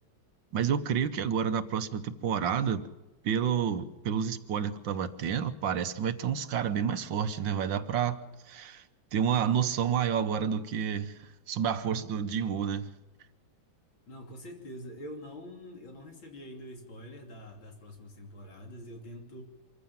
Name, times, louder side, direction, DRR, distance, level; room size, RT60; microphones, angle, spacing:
voice 1, 0.5-2.8 3.2-8.8 9.1-12.9, right 8 dB, 70° right, 10 dB, 1.7 m, -29 dB
voice 2, 14.1-19.4, equal, 75° left, 3 dB, 3.7 m, -45 dB
25.0 x 15.0 x 7.2 m, 1.1 s
omnidirectional pair, 2.2 m